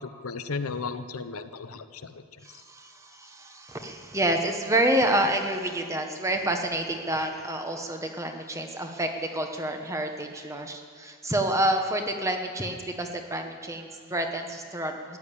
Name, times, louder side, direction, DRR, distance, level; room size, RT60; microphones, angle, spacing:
voice 1, 0.0-2.2, left 4 dB, 90° left, 11 dB, 0.8 m, -35 dB
voice 2, 2.4-15.2, right 1 dB, 15° right, 4 dB, 1.1 m, -28 dB
14.5 x 10.5 x 8.6 m, 2.1 s
head